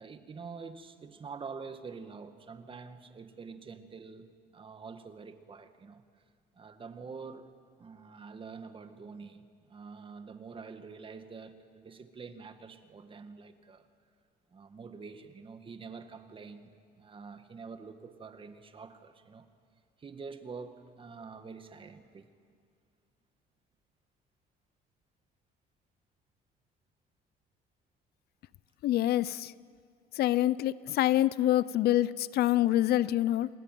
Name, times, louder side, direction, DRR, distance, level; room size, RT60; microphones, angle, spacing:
voice 1, 0.0-6.0 6.6-7.5 7.8-13.9 14.5-19.5 20.0-22.3, right 5 dB, 30° right, 9 dB, 1.9 m, -46 dB
voice 2, 28.8-29.5 30.1-33.5, left 14 dB, 70° left, 19 dB, 0.6 m, -26 dB
29.0 x 19.5 x 9.2 m, 2.2 s
cardioid pair, 110°, 17 cm